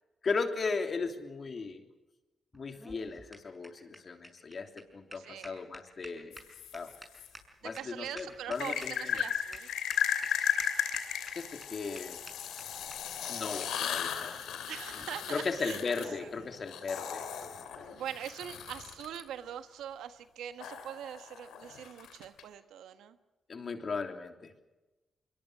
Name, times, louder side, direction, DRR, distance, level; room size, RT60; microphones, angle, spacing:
voice 1, 0.2-1.8 2.5-6.3 6.7-6.9 7.6-9.2 11.3-12.2 13.3-14.4 15.3-17.8 23.5-24.5, left 4 dB, 50° left, 6 dB, 3.2 m, -36 dB
sound 1, 2.5-9.2 9.5-9.6 9.9-10.3 10.6-11.3 11.6-11.7 12.0-12.1 12.3-12.4 12.6-12.7 12.9-13.0 13.2-13.3 13.6-13.7 14.0-14.1 14.9-15.1, right 1 dB, 20° right, 6.4 m, -49 dB
voice 2, 5.1-5.6 7.6-9.7 14.7-15.8 16.2-16.3 17.9-23.2, right 10 dB, 90° right, 10 dB, 1.4 m, -42 dB
sound 2, 6.3-7.3 8.6-19.2 20.6-22.4, left 9 dB, 90° left, 2.7 m, -36 dB
24.0 x 22.5 x 6.3 m, 1.1 s
cardioid pair, 60°, 0 cm